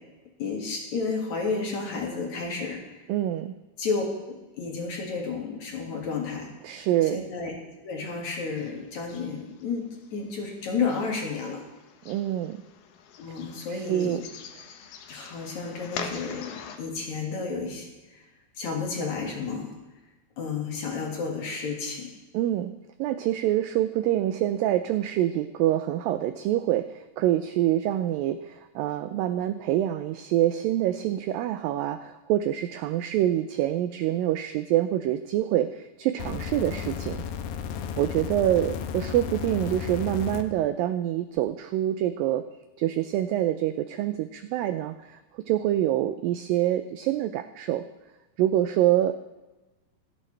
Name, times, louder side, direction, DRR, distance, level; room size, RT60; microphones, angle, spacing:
voice 1, 0.4-3.0 3.8-6.5 7.1-7.5 7.8-11.6 13.2-14.2 15.1-18.2 18.6-19.7 20.4-22.1, left 4 dB, 55° left, 0 dB, 2.9 m, -31 dB
voice 2, 3.1-3.6 6.6-7.2 12.1-12.6 13.7-14.2 22.3-22.7 23.0-37.2 38.0-42.5 42.8-47.8 48.4-49.1, right 12 dB, 90° right, 10 dB, 2.0 m, -26 dB
sound 1, 8.6-16.8, left 7 dB, 70° left, 2.7 m, -44 dB
sound 2, 36.2-40.4 41.4-41.5, left 8 dB, 90° left, 3.0 m, -34 dB
26.5 x 9.0 x 3.3 m, 1.1 s
omnidirectional pair, 4.6 m